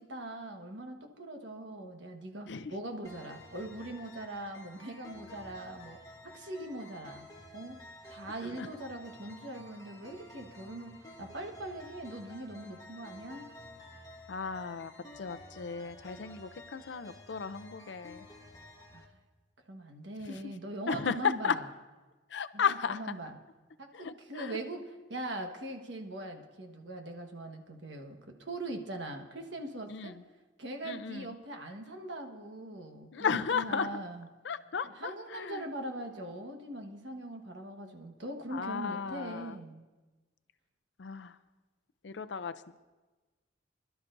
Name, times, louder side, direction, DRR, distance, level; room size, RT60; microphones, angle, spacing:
voice 1, 0.0-6.0 6.2-7.3 7.5-7.8 8.1-10.9 11.2-13.5 18.9-19.1 19.7-21.7 22.5-22.6 22.9-23.3 23.8-24.8 25.1-30.1 30.6-34.3 35.0-39.9, right 1 dB, 70° right, 3 dB, 1.3 m, -41 dB
sound 1, 3.0-19.0, left 1 dB, 20° left, 1.2 m, -52 dB
voice 2, 8.2-8.7 14.3-18.3 20.3-20.4 20.9-21.6 22.3-23.1 23.9-24.6 29.9-30.2 30.8-31.3 33.1-34.0 34.4-35.7 38.5-39.6 41.0-41.4 42.0-42.8, left 6 dB, 65° left, 12 dB, 0.5 m, -35 dB
25.5 x 12.0 x 2.6 m, 1.2 s
head